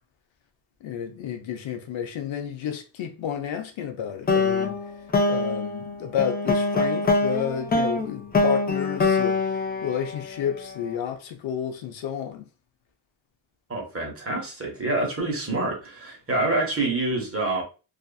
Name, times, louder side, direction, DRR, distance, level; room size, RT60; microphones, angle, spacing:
voice 1, 0.8-4.8 5.3-9.4 9.8-12.4, left 8 dB, 70° left, 0.6 m, -31 dB
sound 1, 4.3-10.7, left 3 dB, 20° left, 0.3 m, -24 dB
voice 2, 13.7-17.6, right 2 dB, 30° right, 0.9 m, -27 dB
2.5 x 2.4 x 2.2 m
cardioid pair, 100°, 48 cm